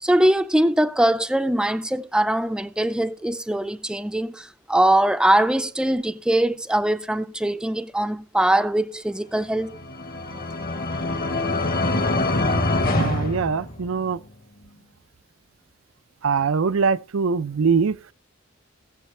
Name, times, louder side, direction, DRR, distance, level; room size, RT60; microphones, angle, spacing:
voice 1, 0.0-9.8, right 1 dB, 5° right, 0.5 m, -22 dB
sound 1, 9.6-14.2, left 2 dB, 45° left, 1.3 m, -24 dB
voice 2, 12.9-14.2 16.2-18.1, right 5 dB, 85° right, 0.5 m, -22 dB
18.5 x 7.3 x 3.3 m
head